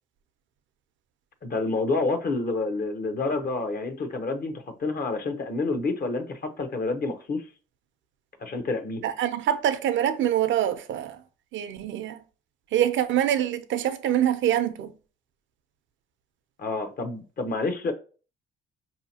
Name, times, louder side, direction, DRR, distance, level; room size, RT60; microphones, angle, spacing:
voice 1, 1.4-7.5 8.4-9.0 16.6-17.9, left 3 dB, 50° left, 0.7 m, -28 dB
voice 2, 9.0-11.2 11.5-12.2 12.7-14.9, right 11 dB, 75° right, 0.6 m, -25 dB
4.9 x 2.8 x 2.8 m
cardioid pair, 90°, 20 cm